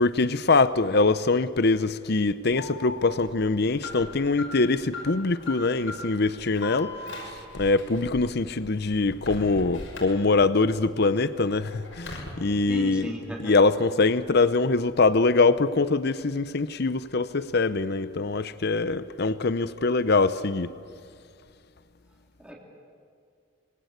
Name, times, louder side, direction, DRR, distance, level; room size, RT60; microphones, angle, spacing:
voice 1, 0.0-13.1 13.4-20.7, left 3 dB, 55° left, 0.8 m, -23 dB
Alarm, 2.5-10.7 11.1-12.3, left 2 dB, 80° left, 6.4 m, -40 dB
voice 2, 12.7-13.5 22.4-22.6, equal, 5° right, 3.2 m, -36 dB
26.0 x 23.5 x 8.1 m
head